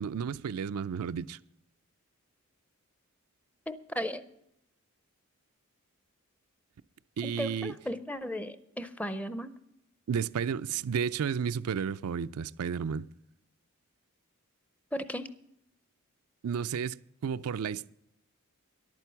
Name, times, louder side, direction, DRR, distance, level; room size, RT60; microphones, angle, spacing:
voice 1, 0.0-1.4 7.2-7.7 10.1-13.1 16.4-17.9, right 7 dB, 85° right, 0.4 m, -32 dB
voice 2, 3.7-4.2 7.2-9.6 14.9-15.3, equal, 5° left, 0.5 m, -36 dB
11.0 x 9.1 x 7.0 m
head